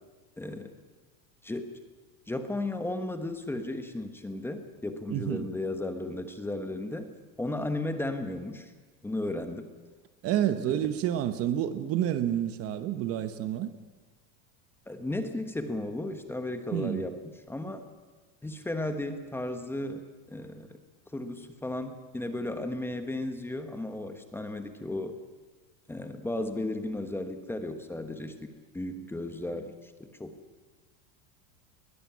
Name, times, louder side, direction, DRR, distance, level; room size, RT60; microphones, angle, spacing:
voice 1, 0.4-0.7 1.4-1.7 2.3-7.1 7.4-8.7 9.0-9.7 10.7-10.9 14.9-17.8 18.4-20.8 21.1-25.2 25.9-30.4, left 2 dB, 5° left, 7 dB, 1.3 m, -35 dB
voice 2, 5.1-5.5 10.2-13.7 16.7-17.0, right 11 dB, 35° right, 11 dB, 1.0 m, -29 dB
21.0 x 13.5 x 9.5 m, 1.3 s
supercardioid pair, 150°, 39 cm